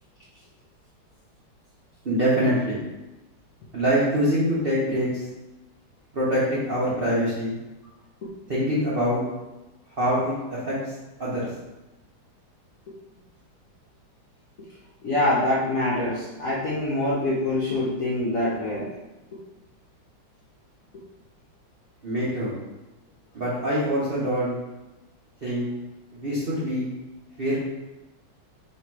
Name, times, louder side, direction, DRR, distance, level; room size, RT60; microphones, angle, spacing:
voice 1, 2.0-2.8 3.7-5.2 6.1-7.5 8.5-9.2 10.0-10.8 11.2-11.5 22.0-22.6 23.3-24.6 25.4-25.7 26.1-26.8 27.4-27.6, equal, 70° right, -8 dB, 0.5 m, -24 dB
voice 2, 15.0-18.9, left 1 dB, 65° left, -7 dB, 0.8 m, -25 dB
3.2 x 3.1 x 4.5 m, 1.0 s
omnidirectional pair, 2.4 m